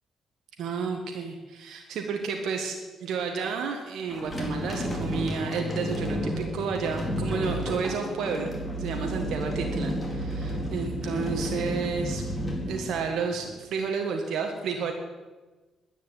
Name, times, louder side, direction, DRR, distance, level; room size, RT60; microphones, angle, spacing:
voice 1, 0.6-12.2 12.7-14.9, right 5 dB, 75° right, 3 dB, 1.6 m, -31 dB
sound 1, 4.1-13.5, equal, 15° left, 4.1 m, -32 dB
10.5 x 10.0 x 9.1 m, 1.3 s
cardioid pair, 90°, 0 cm